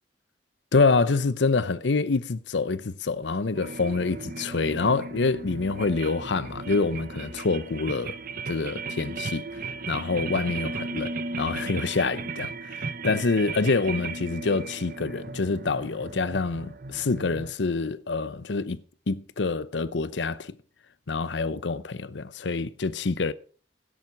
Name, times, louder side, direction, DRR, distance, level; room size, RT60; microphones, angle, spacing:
voice 1, 0.7-8.2 8.5-18.8 19.1-20.5 21.1-23.3, left 4 dB, 80° left, 0.7 m, -26 dB
sound 1, 3.6-17.5, right 3 dB, 55° right, 1.0 m, -36 dB
17.0 x 7.3 x 5.8 m
head